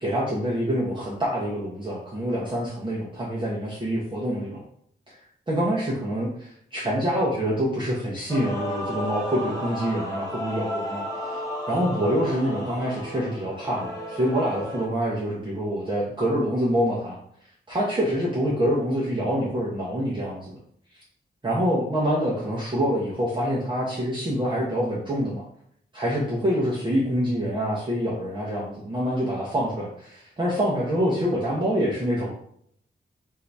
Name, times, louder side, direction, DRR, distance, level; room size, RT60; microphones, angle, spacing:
voice 1, 0.0-4.6 5.1-5.2 5.5-11.4 11.7-17.2 17.7-20.6 21.4-25.4 25.9-32.3, equal, 25° right, -6 dB, 1.0 m, -26 dB
Male singing / Female singing / Musical instrument, 8.3-14.9, left 1 dB, 15° left, 1.2 m, -33 dB
3.7 x 2.7 x 4.6 m, 0.67 s
wide cardioid pair, 155°, 19 cm